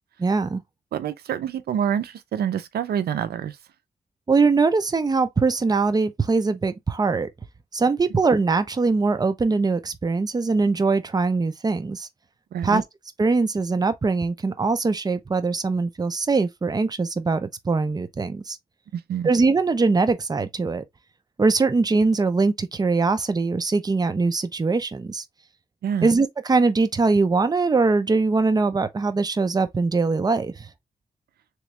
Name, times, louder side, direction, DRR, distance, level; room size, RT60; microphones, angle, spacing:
voice 1, 0.2-0.6 4.3-7.3 7.7-12.1 12.6-12.8 13.2-18.6 19.2-20.8 21.4-25.2 26.0-30.7, right 4 dB, 25° right, 0.6 m, -22 dB
voice 2, 0.9-3.6 12.5-12.8 18.9-19.3 25.8-26.1, right 8 dB, 85° right, 0.4 m, -27 dB
3.5 x 3.1 x 3.1 m
cardioid pair, 85°, 16 cm